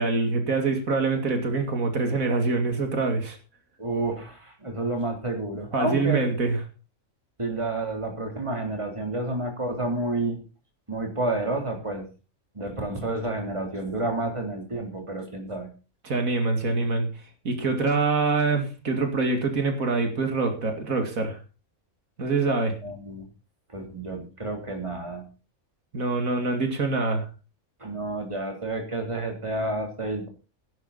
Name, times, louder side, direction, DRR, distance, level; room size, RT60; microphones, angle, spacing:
voice 1, 0.0-3.4 5.7-6.6 16.0-17.1 17.4-21.4 22.2-22.8 25.9-27.2, right 3 dB, 85° right, 5 dB, 2.8 m, -25 dB
voice 2, 3.8-6.2 7.4-10.4 10.9-12.1 12.5-15.7 22.8-23.3 23.7-25.2 27.8-30.3, right 2 dB, 20° right, 3 dB, 3.7 m, -30 dB
17.0 x 11.0 x 4.3 m, 0.32 s
omnidirectional pair, 1.4 m